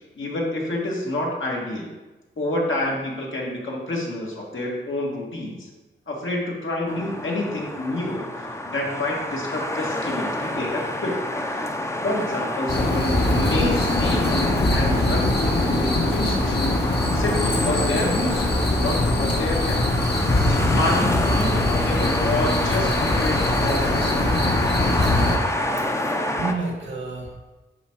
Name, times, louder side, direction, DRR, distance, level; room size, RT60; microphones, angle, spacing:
voice 1, 0.2-1.9 2.4-5.7 6.1-8.3 8.7-11.2 11.5-11.7 12.0-16.7 17.1-19.8 20.5-24.5, left 1 dB, 75° left, -2 dB, 1.8 m, -28 dB
sound 1, 6.9-26.5, left 1 dB, 15° left, 0.6 m, -28 dB
Crickets At Night - Raw sound, 12.7-25.4, left 2 dB, 55° left, 1.3 m, -22 dB
voice 2, 25.0-27.3, right 3 dB, 85° right, -1 dB, 1.6 m, -32 dB
11.0 x 3.7 x 4.6 m, 1.2 s
wide cardioid pair, 110°, 20 cm